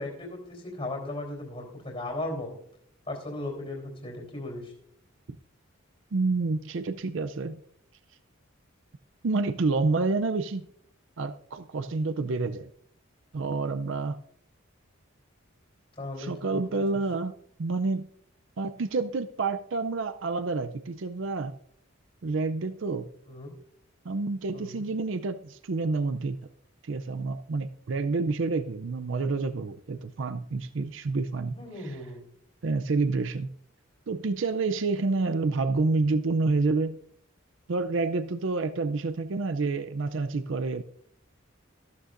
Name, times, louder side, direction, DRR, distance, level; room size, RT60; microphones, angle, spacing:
voice 1, 0.0-2.5 3.0-4.7 16.0-16.6 23.3-23.5 24.5-24.9 31.5-32.2, left 2 dB, 30° left, -3 dB, 3.1 m, -36 dB
voice 2, 6.1-7.6 9.2-10.7 11.2-12.7 13.3-14.2 16.2-18.1 18.6-21.5 22.2-23.1 24.0-26.4 26.8-32.0 32.6-33.5 34.1-37.0 37.7-40.8, right 3 dB, 65° right, 10 dB, 0.5 m, -28 dB
14.0 x 13.0 x 2.5 m, 0.69 s
head